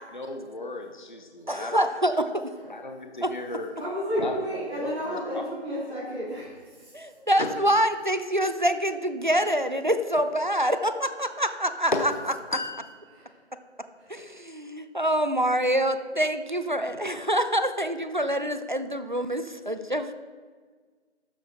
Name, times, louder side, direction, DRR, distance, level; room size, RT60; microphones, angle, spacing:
voice 1, 0.1-1.8 2.1-2.2 2.6-3.7 4.2-5.2 7.4-7.6 11.9-12.0 12.5-12.9 16.9-17.3, left 2 dB, 45° left, 4 dB, 0.8 m, -34 dB
voice 2, 1.5-2.4 3.2-3.3 6.9-11.9 14.1-20.1, equal, 45° right, 10 dB, 0.6 m, -26 dB
voice 3, 3.7-7.2 13.1-13.4 13.9-14.1, equal, 5° right, -18 dB, 2.7 m, -32 dB
12.5 x 7.5 x 4.3 m, 1.5 s
figure-of-eight pair, 180°, 34 cm